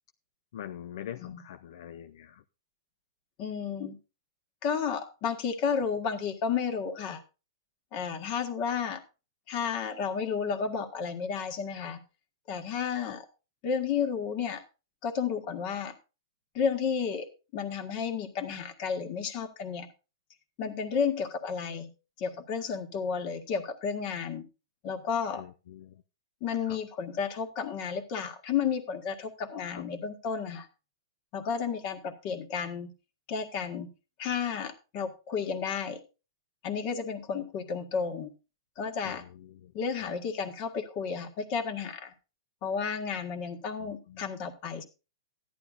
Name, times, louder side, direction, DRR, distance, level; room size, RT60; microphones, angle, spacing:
voice 1, 0.5-2.4 13.0-13.1 25.4-26.0 26.7-26.8 29.6-29.9 39.0-39.7 40.0-40.1 43.8-44.3, left 10 dB, 65° left, 0.4 m, -44 dB
voice 2, 3.4-4.0 4.6-7.2 7.9-9.0 9.5-12.0 12.5-13.2 13.6-14.6 15.0-15.9 16.5-19.9 20.6-21.9 22.2-24.4 24.8-25.4 26.4-30.7 31.3-32.9 33.3-33.9 34.2-36.0 36.6-38.3 38.8-39.2 39.7-42.1 42.6-44.8, left 6 dB, 40° left, 1.7 m, -32 dB
14.0 x 10.5 x 2.5 m
hypercardioid pair, 135°, 3 cm